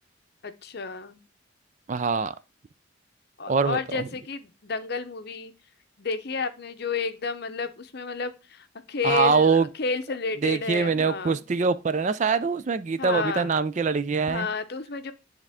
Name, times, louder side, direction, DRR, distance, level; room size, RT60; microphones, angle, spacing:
voice 1, 0.4-1.2 3.4-5.5 6.0-11.4 13.0-13.5 14.3-15.1, left 5 dB, 50° left, 0.7 m, -31 dB
voice 2, 1.9-2.3 3.5-3.8 9.0-9.6 10.4-14.5, right 5 dB, 35° right, 0.4 m, -23 dB
9.9 x 3.6 x 3.5 m
head